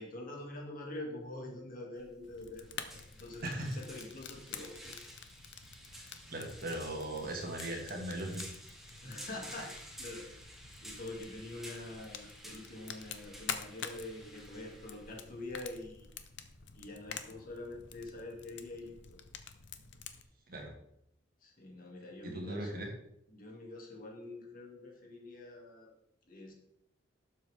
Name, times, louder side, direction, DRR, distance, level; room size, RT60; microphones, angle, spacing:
voice 1, 0.0-5.0 8.9-9.7 10.0-10.2 10.8-16.1 16.7-19.2 21.4-22.9 23.3-25.9 26.3-26.5, left 2 dB, 50° left, -1 dB, 2.6 m, -45 dB
sound 1, 2.0-16.6, equal, ahead, 1.9 m, -52 dB
Fire, 2.2-20.2, left 7 dB, 65° left, 0.9 m, -48 dB
voice 2, 3.4-3.8 5.9-8.4 20.5-20.7 22.2-22.9, right 1 dB, 50° right, 2 dB, 2.1 m, -39 dB
12.0 x 7.6 x 3.6 m, 0.76 s
head